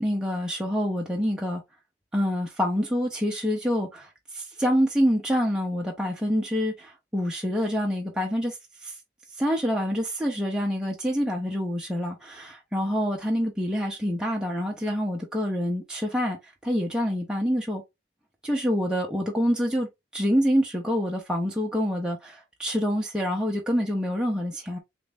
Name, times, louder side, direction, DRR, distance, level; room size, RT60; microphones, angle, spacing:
voice 1, 0.0-1.6 2.1-8.9 9.4-16.4 16.6-17.8 18.4-19.9 20.1-24.8, equal, 5° right, 0.6 m, -26 dB
3.1 x 2.6 x 3.3 m
head